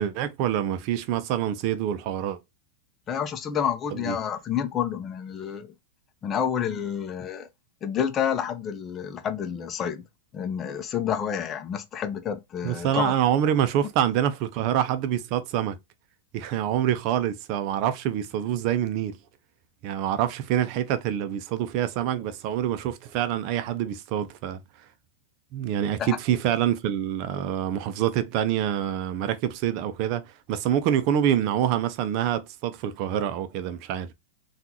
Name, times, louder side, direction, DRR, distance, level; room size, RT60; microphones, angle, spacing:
voice 1, 0.0-2.4 3.9-4.2 12.6-15.8 16.3-19.2 19.8-24.6 25.5-30.2 30.5-34.1, right 10 dB, 50° right, 0.6 m, -26 dB
voice 2, 3.1-5.7 6.2-7.5 7.8-10.0 10.3-13.1 26.0-26.2, left 8 dB, 30° left, 0.6 m, -29 dB
3.6 x 2.4 x 2.9 m
hypercardioid pair, 115°, 0 cm